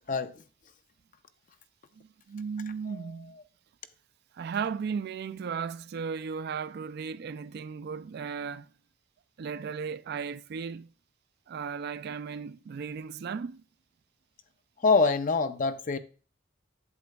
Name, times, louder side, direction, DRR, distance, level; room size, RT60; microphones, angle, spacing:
voice 1, 0.1-0.4 2.9-3.1 14.8-16.0, left 4 dB, 40° left, 0.5 m, -25 dB
voice 2, 2.0-3.3 4.4-8.7 9.4-10.9 11.5-13.6, right 6 dB, 55° right, 0.3 m, -36 dB
8.3 x 7.8 x 2.3 m
head